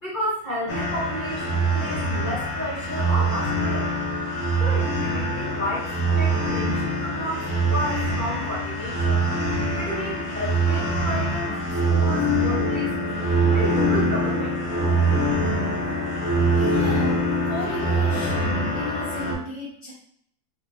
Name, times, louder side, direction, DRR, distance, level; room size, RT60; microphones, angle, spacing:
voice 1, 0.0-3.9 4.6-7.4 7.7-9.2 9.7-11.6 11.9-13.1 13.5-14.7, left 1 dB, 30° left, -9 dB, 1.9 m, -31 dB
sound 1, 0.7-19.3, right 1 dB, 70° left, 1.5 m, -24 dB
voice 2, 16.5-19.9, left 2 dB, 20° right, -9 dB, 1.4 m, -35 dB
4.8 x 3.4 x 2.5 m, 0.67 s
omnidirectional pair, 1.7 m